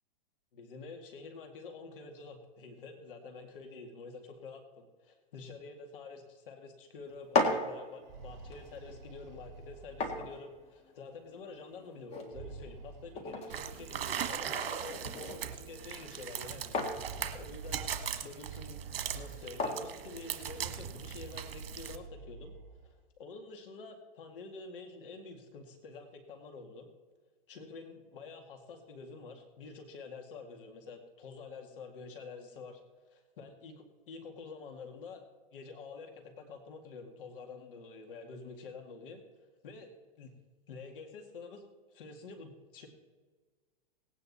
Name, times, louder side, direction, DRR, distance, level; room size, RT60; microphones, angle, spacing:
voice 1, 0.5-17.9 18.2-18.8 19.1-22.5 23.2-26.9 27.5-32.8 33.1-35.2 35.5-39.2 39.6-39.9 40.2-40.3 40.7-42.9, left 4 dB, 65° left, 4 dB, 2.2 m, -48 dB
sound 1, 7.1-21.0, left 2 dB, 20° left, 1.9 m, -39 dB
sound 2, 7.9-10.7 12.1-13.8 14.8-14.9 15.2-15.3 16.6-19.8 20.3-22.9, right 5 dB, 50° right, 3.8 m, -48 dB
sound 3, 13.5-22.0, right 8 dB, 75° right, 1.5 m, -39 dB
18.0 x 9.4 x 4.2 m, 1.4 s
hypercardioid pair, 145°, 29 cm